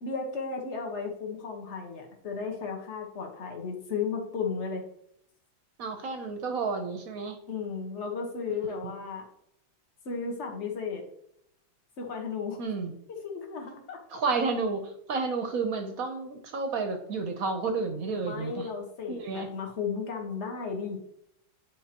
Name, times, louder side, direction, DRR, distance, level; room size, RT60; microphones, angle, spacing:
voice 1, 0.0-4.8 7.5-9.2 10.0-11.0 12.0-12.6 13.2-14.0 18.2-21.0, left 5 dB, 40° left, 2 dB, 1.3 m, -34 dB
voice 2, 5.8-7.4 8.6-8.9 12.6-12.9 14.1-18.7 19.1-19.5, right 4 dB, 60° right, 6 dB, 1.0 m, -31 dB
9.9 x 4.5 x 2.9 m, 0.73 s
omnidirectional pair, 2.2 m